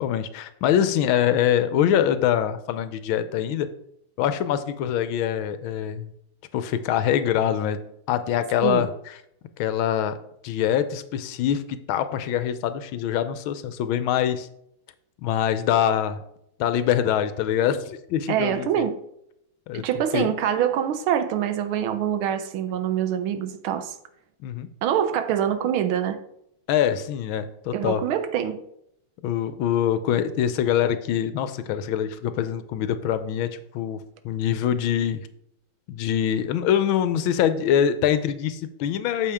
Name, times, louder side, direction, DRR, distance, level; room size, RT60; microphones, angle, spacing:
voice 1, 0.0-3.7 4.2-6.1 6.5-7.8 8.1-9.1 9.6-10.2 10.4-14.5 15.2-16.2 16.6-18.8 19.7-19.8 20.1-20.3 24.4-24.7 26.7-28.0 29.2-35.3 35.9-39.3, left 9 dB, 80° left, 11 dB, 1.4 m, -24 dB
voice 2, 18.3-19.0 19.7-23.9 24.8-26.2 27.7-28.6, right 9 dB, 85° right, 10 dB, 1.6 m, -25 dB
8.6 x 6.6 x 3.5 m, 0.75 s
omnidirectional pair, 2.3 m